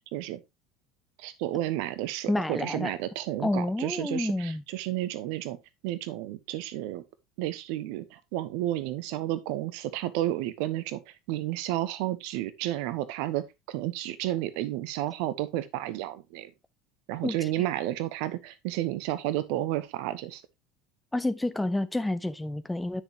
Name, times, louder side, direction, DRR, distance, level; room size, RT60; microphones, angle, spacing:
voice 1, 1.2-5.6 5.8-7.0 7.4-11.0 11.3-16.5 17.1-20.4, right 14 dB, 60° right, 0.9 m, -31 dB
voice 2, 2.3-2.9 3.4-4.6 17.2-17.5 21.1-23.0, left 2 dB, 10° left, 0.8 m, -29 dB
9.7 x 6.4 x 2.9 m
figure-of-eight pair, 70°, 0 cm